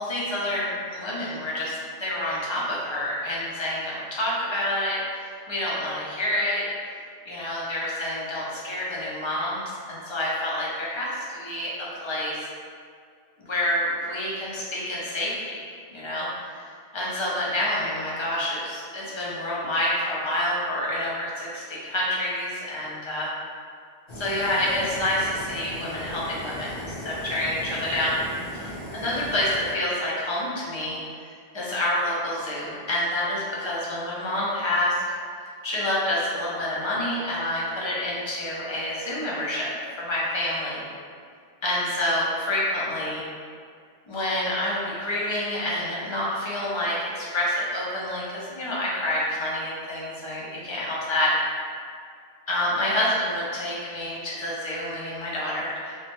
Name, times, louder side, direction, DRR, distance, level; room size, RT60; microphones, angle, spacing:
voice 1, 0.0-6.7 7.3-9.6 9.9-12.5 13.4-16.3 16.9-23.3 24.2-28.1 28.5-31.0 31.5-35.0 35.6-39.7 40.0-40.8 41.6-43.2 44.1-51.3 52.5-55.9, left 1 dB, 40° left, -6 dB, 0.4 m, -28 dB
Fire, 24.1-29.7, equal, 75° left, 1.2 m, -38 dB
3.0 x 2.1 x 2.8 m, 2.2 s
omnidirectional pair, 1.1 m